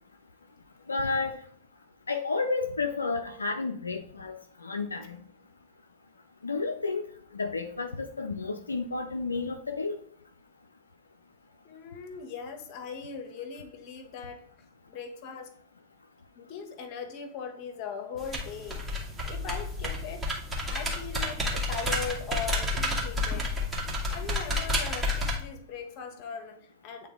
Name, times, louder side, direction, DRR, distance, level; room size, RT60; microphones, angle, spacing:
voice 1, 0.9-1.4 2.1-5.2 6.4-7.1 7.3-10.0, left 4 dB, 85° left, 6 dB, 0.4 m, -31 dB
voice 2, 11.6-14.4 14.9-15.5 16.3-18.9 19.2-20.3 20.7-23.5 24.0-27.1, left 6 dB, 45° left, 5 dB, 1.3 m, -39 dB
sound 1, 18.2-25.4, left 1 dB, 20° right, 2.1 m, -30 dB
8.4 x 3.8 x 3.6 m, 0.62 s
figure-of-eight pair, 95°, 0 cm